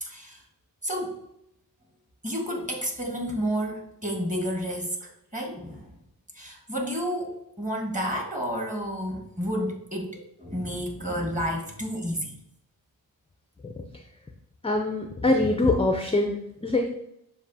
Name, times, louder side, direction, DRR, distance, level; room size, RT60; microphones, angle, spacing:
voice 1, 0.0-0.4 0.8-1.2 2.2-5.9 6.3-12.4, equal, 15° right, 0 dB, 1.4 m, -31 dB
voice 2, 14.6-16.9, left 2 dB, 15° left, 4 dB, 0.4 m, -24 dB
6.9 x 2.5 x 2.7 m, 0.79 s
cardioid pair, 45°, 44 cm